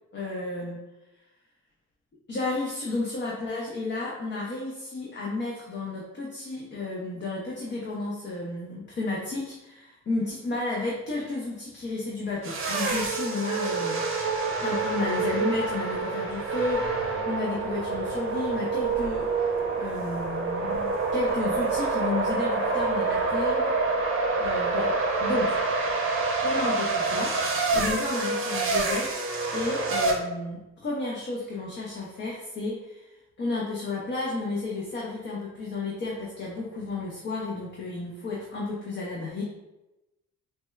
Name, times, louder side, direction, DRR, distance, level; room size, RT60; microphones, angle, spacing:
voice 1, 0.1-0.8 2.3-14.0 14.6-19.3 19.8-24.0 24.4-25.6 26.4-29.2 29.5-33.1 33.4-39.4, left 2 dB, 35° left, -3 dB, 0.6 m, -32 dB
sound 1, 12.4-30.1, right 3 dB, 45° right, 0.7 m, -27 dB
4.1 x 2.1 x 2.3 m, 1.0 s
cardioid pair, 90°, 30 cm